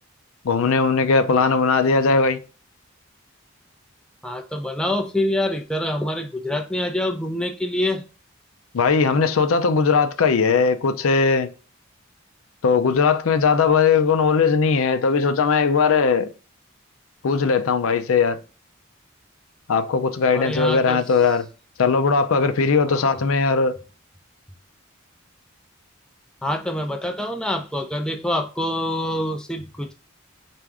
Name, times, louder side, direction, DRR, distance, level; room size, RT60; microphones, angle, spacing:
voice 1, 0.4-2.4 8.7-11.5 12.6-16.3 17.2-18.4 19.7-21.4 21.8-23.7, left 5 dB, 85° left, 0.5 m, -19 dB
voice 2, 4.2-8.0 20.2-21.0 22.9-23.2 26.4-29.9, left 1 dB, 5° left, 0.4 m, -26 dB
4.6 x 2.5 x 3.4 m
head